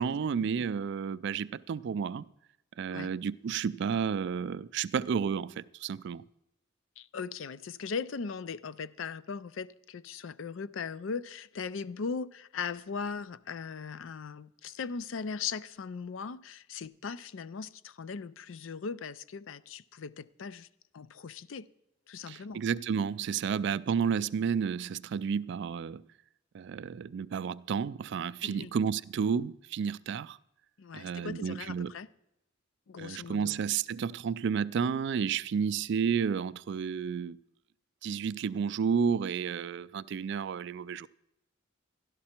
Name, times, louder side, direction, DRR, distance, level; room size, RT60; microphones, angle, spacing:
voice 1, 0.0-2.3 2.8-6.2 22.3-26.0 26.5-30.4 30.9-31.9 33.0-37.4 38.0-41.1, right 6 dB, 60° right, 0.3 m, -31 dB
voice 2, 7.0-20.7 20.9-21.7 22.1-22.6 28.4-28.7 30.8-32.1 32.9-33.7, left 5 dB, 70° left, 0.5 m, -39 dB
12.5 x 12.0 x 4.4 m
head